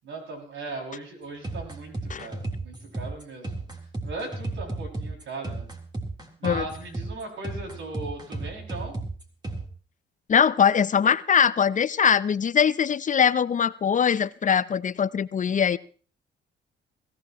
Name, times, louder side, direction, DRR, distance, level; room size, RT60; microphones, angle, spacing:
voice 1, 0.0-3.5 4.0-5.7 6.4-9.0, right 2 dB, 75° right, 2 dB, 6.3 m, -38 dB
sound 1, 1.4-9.7, right 2 dB, 20° right, 3.7 m, -34 dB
voice 2, 10.3-15.8, left 7 dB, 40° left, 17 dB, 0.6 m, -22 dB
22.0 x 15.5 x 3.1 m, 0.40 s
cardioid pair, 90°, 20 cm